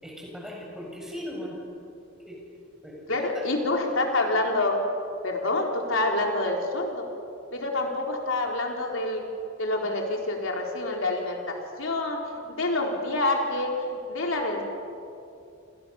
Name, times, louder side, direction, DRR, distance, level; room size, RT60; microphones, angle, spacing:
voice 1, 0.0-1.6 2.2-2.4 2.8-3.5, equal, ahead, -2 dB, 7.3 m, -38 dB
voice 2, 3.1-4.8 5.2-7.1 7.5-9.2 9.6-12.2 12.5-14.6, left 2 dB, 70° left, 1 dB, 3.9 m, -27 dB
28.5 x 28.5 x 7.1 m, 2.6 s
head